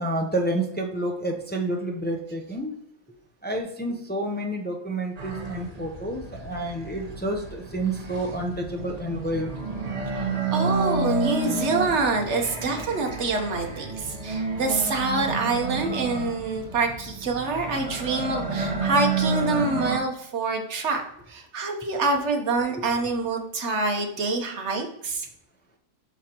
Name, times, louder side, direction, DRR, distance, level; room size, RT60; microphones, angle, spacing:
voice 1, 0.0-2.7 3.4-9.5 22.7-22.8, right 1 dB, 15° left, 2 dB, 0.4 m, -29 dB
sound 1, 5.2-20.0, right 3 dB, 30° right, 1.0 m, -30 dB
voice 2, 10.1-21.0 21.3-25.3, right 3 dB, 55° right, 3 dB, 1.3 m, -26 dB
7.6 x 6.2 x 3.0 m, 0.74 s
omnidirectional pair, 1.6 m